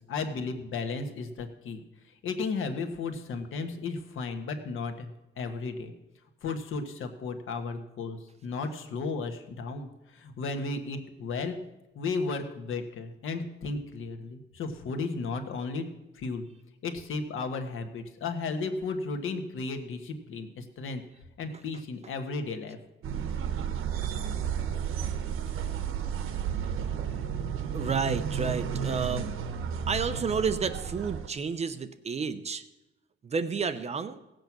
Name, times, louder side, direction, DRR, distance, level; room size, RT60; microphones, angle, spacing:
voice 1, 0.0-5.9 6.4-11.6 11.9-15.8 16.1-16.5 16.8-21.0 21.4-22.8, left 4 dB, 75° left, 6 dB, 1.5 m, -34 dB
sound 1, 23.0-31.3, right 7 dB, 85° right, 1.1 m, -32 dB
voice 2, 27.7-29.3 29.9-32.6 33.2-34.2, right 5 dB, 30° right, 11 dB, 0.6 m, -30 dB
17.0 x 7.9 x 6.0 m, 0.98 s
wide cardioid pair, 170°, 21 cm